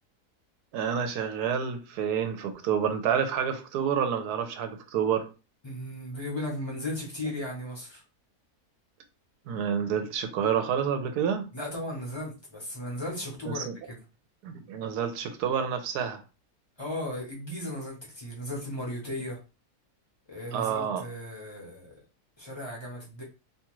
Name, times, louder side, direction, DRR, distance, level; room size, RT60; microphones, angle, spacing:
voice 1, 0.7-5.3 9.5-11.5 13.6-13.7 14.4-16.2 20.5-21.0, right 7 dB, 80° right, 1.1 m, -28 dB
voice 2, 5.6-8.0 11.5-14.0 16.8-19.4 20.3-22.0 22.4-23.2, left 1 dB, 30° left, 0.5 m, -36 dB
2.8 x 2.4 x 3.0 m
omnidirectional pair, 1.7 m